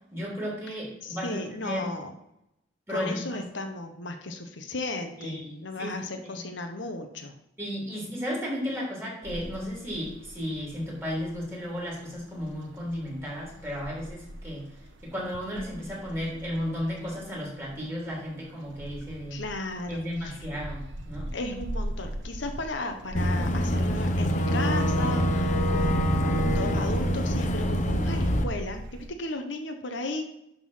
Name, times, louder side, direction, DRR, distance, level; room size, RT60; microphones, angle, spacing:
voice 1, 0.1-1.8 2.9-3.4 5.2-5.9 6.2-6.4 7.6-14.7 15.0-19.4 19.9-21.3, equal, 15° right, -4 dB, 3.4 m, -34 dB
voice 2, 1.0-2.1 2.9-7.3 19.3-20.4 21.3-30.2, left 2 dB, 70° left, 5 dB, 1.0 m, -35 dB
sound 1, 9.2-29.1, right 1 dB, 75° right, 1.0 m, -40 dB
Boat Water vehicle / Engine, 23.1-28.4, equal, 40° left, 0.9 m, -25 dB
11.0 x 3.9 x 5.7 m, 0.82 s
head